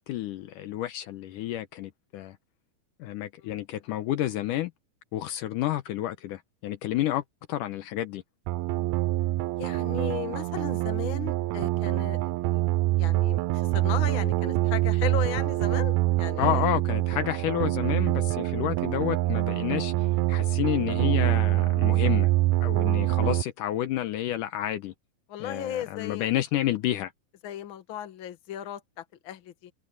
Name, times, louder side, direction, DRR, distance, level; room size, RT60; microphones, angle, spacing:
voice 1, 0.0-2.4 3.0-4.7 5.1-7.2 7.5-8.2 16.4-22.3 22.6-24.9 25.4-27.1, left 13 dB, 75° left, 2.4 m, -30 dB
sound 1, 8.5-23.4, right 18 dB, 90° right, 1.5 m, -25 dB
voice 2, 9.6-12.6 12.9-16.7 25.3-26.3 27.4-29.7, left 9 dB, 45° left, 1.9 m, -36 dB
open air
omnidirectional pair, 3.9 m